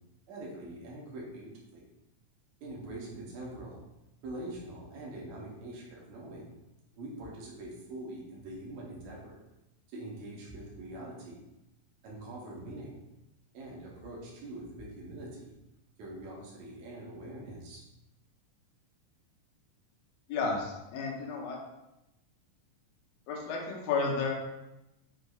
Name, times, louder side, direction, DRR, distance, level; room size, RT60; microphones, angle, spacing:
voice 1, 0.3-1.9 2.6-3.8 4.2-6.5 7.0-9.4 9.9-11.4 12.0-13.1 13.5-15.5 16.0-17.9, right 1 dB, 70° right, -3 dB, 2.1 m, -44 dB
voice 2, 20.3-21.6 23.3-24.3, left 4 dB, 85° left, -2 dB, 1.4 m, -32 dB
6.2 x 2.6 x 2.3 m, 0.94 s
omnidirectional pair, 3.8 m